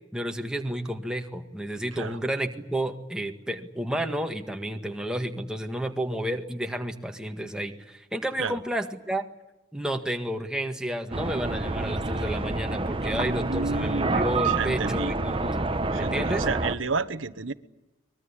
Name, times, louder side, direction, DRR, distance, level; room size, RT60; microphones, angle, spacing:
voice 1, 0.1-9.2 9.7-15.6 15.9-16.5, right 1 dB, 5° right, 1.8 m, -31 dB
sound 1, 11.1-16.7, right 2 dB, 30° right, 1.1 m, -28 dB
voice 2, 13.1-15.1 15.9-17.5, right 4 dB, 85° right, 1.2 m, -31 dB
23.5 x 21.5 x 9.9 m
head